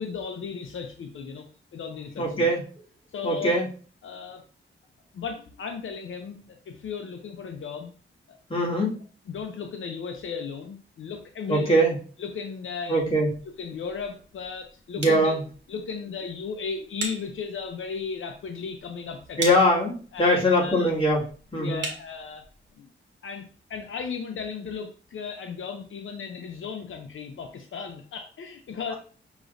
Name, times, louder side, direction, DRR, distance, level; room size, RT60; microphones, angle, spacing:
voice 1, 0.0-1.5 1.7-2.6 3.1-3.6 4.0-4.4 5.1-7.9 8.3-8.7 9.3-11.8 12.2-13.2 13.6-15.3 15.7-19.6 20.1-20.9 21.6-22.4 22.8-22.9 23.2-28.9, left 6 dB, 75° left, 4 dB, 0.6 m, -35 dB
voice 2, 2.2-2.6 3.2-3.7 8.5-9.0 11.5-12.0 12.9-13.3 15.0-15.4 19.4-21.2 21.5-21.8, equal, 25° left, -4 dB, 2.0 m, -22 dB
sound 1, 13.0-22.7, right 3 dB, 60° right, 1.3 m, -41 dB
6.3 x 3.0 x 2.5 m, 0.39 s
wide cardioid pair, 105°, 21 cm